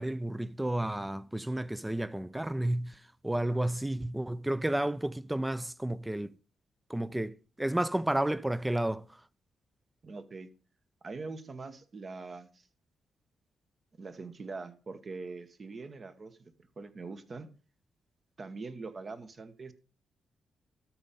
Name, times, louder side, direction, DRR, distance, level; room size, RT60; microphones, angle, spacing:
voice 1, 0.0-3.0 3.2-6.3 6.9-9.1, right 1 dB, 10° right, 0.4 m, -31 dB
voice 2, 10.0-10.5 11.0-12.7 14.0-17.5 18.4-19.7, right 3 dB, 45° right, 1.1 m, -43 dB
13.0 x 4.4 x 5.3 m
supercardioid pair, 55°, 0 cm